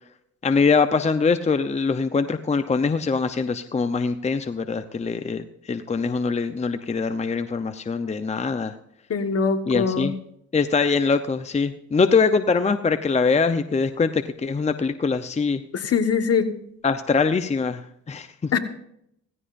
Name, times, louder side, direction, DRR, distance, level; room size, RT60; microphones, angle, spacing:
voice 1, 0.4-8.7 9.7-10.1 10.5-15.6 16.8-18.6, left 4 dB, 20° left, 9 dB, 0.7 m, -23 dB
voice 2, 9.1-10.1 15.7-16.5 18.5-18.6, left 5 dB, 50° left, 8 dB, 1.5 m, -22 dB
17.0 x 15.5 x 2.6 m, 0.73 s
cardioid pair, 90°, 30 cm